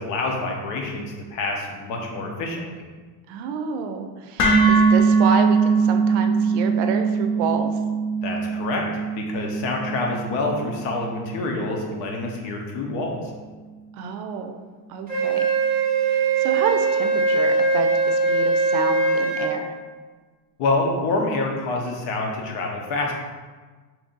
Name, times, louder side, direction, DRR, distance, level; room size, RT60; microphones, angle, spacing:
voice 1, 0.0-2.8 8.2-8.8 9.1-13.2 20.6-23.1, left 2 dB, 70° left, 1 dB, 0.8 m, -27 dB
voice 2, 3.3-7.7 13.9-14.6 14.9-15.4 16.0-19.7, right 5 dB, 65° right, 6 dB, 0.5 m, -29 dB
sound 1, 4.4-12.5, right 4 dB, 30° left, 0.5 m, -22 dB
Wind instrument woodwind instrument, 15.1-19.5, right 4 dB, 20° right, 0.5 m, -21 dB
2.8 x 2.6 x 3.8 m, 1.4 s
cardioid pair, 150°, 44 cm